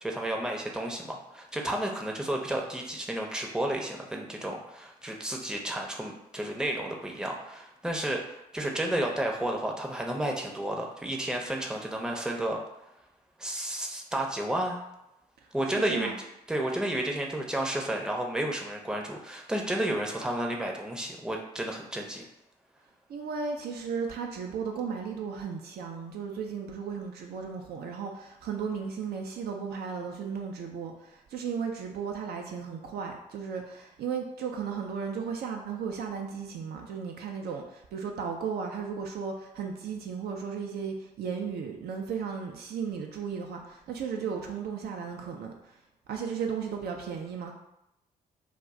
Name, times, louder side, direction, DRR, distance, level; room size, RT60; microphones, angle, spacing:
voice 1, 0.0-12.6 13.4-14.8 15.5-16.1 16.5-22.2, right 1 dB, 5° right, 0 dB, 0.6 m, -32 dB
voice 2, 15.7-16.1 23.1-45.8 46.1-47.5, right 6 dB, 55° right, 2 dB, 0.4 m, -35 dB
2.4 x 2.1 x 3.5 m, 0.86 s
hypercardioid pair, 40°, 19 cm